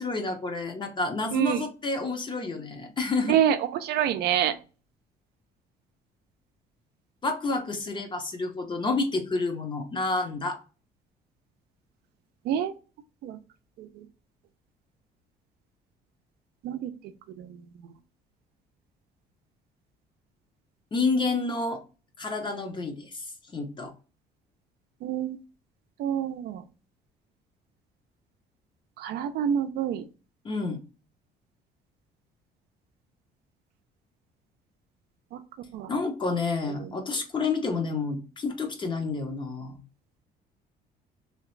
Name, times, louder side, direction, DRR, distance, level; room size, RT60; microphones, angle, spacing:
voice 1, 0.0-3.4 7.2-10.6 20.9-21.8 22.2-23.2 23.5-23.9 30.4-30.8 35.9-39.8, left 3 dB, 30° left, 5 dB, 0.7 m, -29 dB
voice 2, 3.3-4.5 12.5-12.7 13.2-13.4 13.8-13.9 16.6-16.9 17.4-17.5 25.0-25.4 26.0-26.6 29.0-30.0 35.7-35.9, right 9 dB, 70° right, 9 dB, 0.4 m, -26 dB
2.9 x 2.4 x 3.1 m, 0.33 s
cardioid pair, 110°, 17 cm